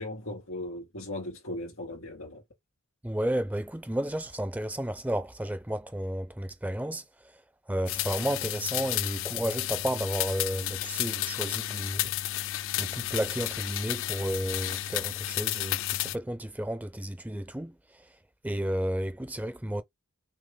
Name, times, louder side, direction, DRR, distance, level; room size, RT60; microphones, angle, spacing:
voice 1, 0.0-2.4, left 1 dB, 85° left, 2.6 m, -37 dB
voice 2, 3.0-7.4 7.7-12.1 12.8-18.1 18.4-19.8, right 1 dB, 5° right, 0.4 m, -32 dB
sound 1, 7.9-16.2, left 14 dB, 60° left, 0.3 m, -32 dB
6.0 x 2.0 x 3.9 m
head